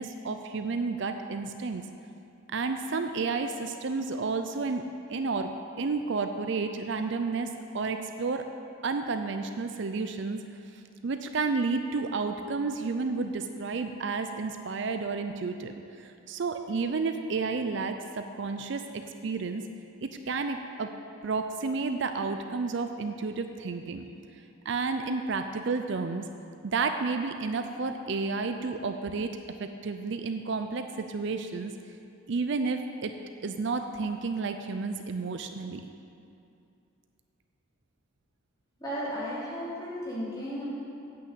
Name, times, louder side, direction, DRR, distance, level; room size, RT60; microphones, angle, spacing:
voice 1, 0.0-1.8 2.5-5.5 5.8-8.4 8.8-10.4 11.0-19.6 20.0-20.9 21.2-24.1 24.7-26.3 26.6-31.7 32.3-33.1 33.4-35.8, right 4 dB, 55° right, 7 dB, 0.4 m, -31 dB
voice 2, 38.8-40.6, equal, 20° left, -9 dB, 2.9 m, -34 dB
8.3 x 6.4 x 8.2 m, 2.6 s
head